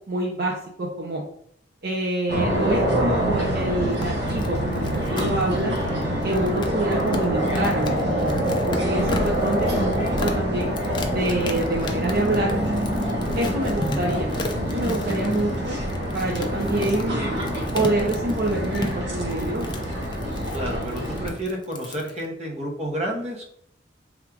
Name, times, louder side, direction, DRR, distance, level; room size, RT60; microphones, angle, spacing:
voice 1, 0.1-1.2 1.8-5.8 6.2-10.7 11.1-12.6 13.3-14.3 14.6-15.8 16.1-17.3 17.7-19.7, right 2 dB, 55° right, -2 dB, 0.6 m, -26 dB
sound 1, 2.3-21.3, equal, 70° right, 1.1 m, -26 dB
sound 2, 3.8-22.2, left 2 dB, 25° left, 0.4 m, -34 dB
voice 2, 20.5-23.4, equal, 35° right, 0 dB, 0.9 m, -30 dB
3.6 x 2.4 x 4.6 m, 0.67 s
head